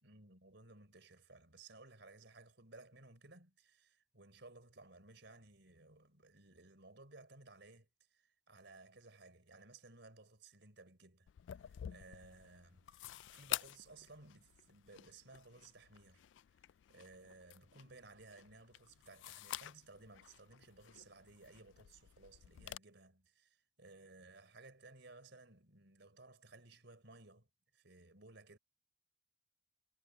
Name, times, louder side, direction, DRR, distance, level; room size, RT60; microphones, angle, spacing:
voice 1, 0.0-11.3 11.5-16.3 16.9-27.5 27.7-28.6, right 3 dB, 65° right, 4.1 m, -59 dB
sound 1, 11.3-22.8, left 13 dB, 75° left, 0.3 m, -49 dB
head